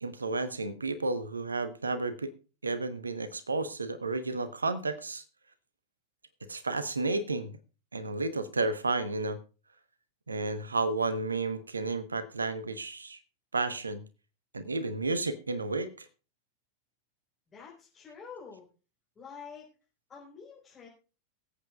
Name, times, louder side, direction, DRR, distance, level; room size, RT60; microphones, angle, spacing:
voice 1, 0.0-2.3 2.6-5.2 6.5-7.6 7.9-9.4 10.3-13.2 13.5-14.0 14.5-16.1, right 3 dB, 75° right, 13 dB, 1.0 m, -32 dB
voice 2, 17.5-18.7 19.1-19.7 20.1-20.9, left 6 dB, 20° left, -5 dB, 4.4 m, -47 dB
23.0 x 8.3 x 2.4 m, 0.34 s
figure-of-eight pair, 90°, 0 cm